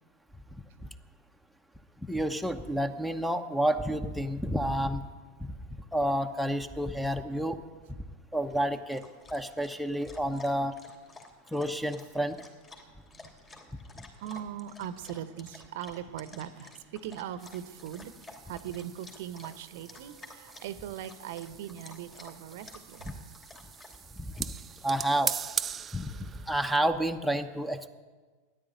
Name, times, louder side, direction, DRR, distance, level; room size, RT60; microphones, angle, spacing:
voice 1, 2.1-5.0 5.9-7.6 7.9-8.0 8.3-9.0 9.3-10.8 11.5-12.4 24.4-24.5 24.8-25.3 25.9-27.9, right 1 dB, ahead, 11 dB, 0.9 m, -29 dB
Dog, 8.4-25.8, left 2 dB, 25° left, 3.0 m, -53 dB
voice 2, 12.9-13.6 13.9-18.1 18.4-23.1, right 10 dB, 60° right, 13 dB, 0.9 m, -40 dB
sound 1, 17.4-26.8, right 8 dB, 25° right, 0.4 m, -41 dB
14.0 x 10.0 x 9.2 m, 1.4 s
figure-of-eight pair, 90°, 0 cm